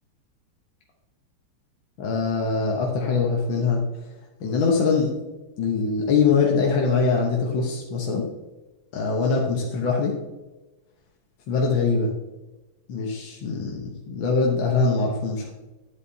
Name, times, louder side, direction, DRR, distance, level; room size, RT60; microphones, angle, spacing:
voice 1, 2.0-3.8 4.4-5.1 5.6-8.3 8.9-10.1 11.5-12.1 12.9-15.5, left 4 dB, 65° left, -1 dB, 1.7 m, -23 dB
10.5 x 8.4 x 2.7 m, 1.1 s
omnidirectional pair, 2.4 m